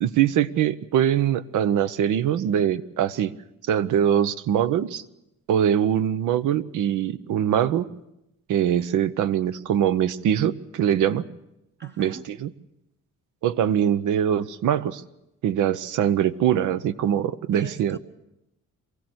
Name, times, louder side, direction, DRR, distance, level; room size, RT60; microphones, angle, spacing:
voice 1, 0.0-3.3 3.7-5.0 5.5-7.9 8.5-11.2 12.0-12.5 13.4-15.0 15.4-18.0, right 9 dB, 80° right, 14 dB, 0.9 m, -23 dB
voice 2, 11.8-12.2 17.5-18.0, right 5 dB, 35° right, 4 dB, 1.1 m, -39 dB
23.5 x 16.0 x 7.9 m, 0.88 s
cardioid pair, 90°, 30 cm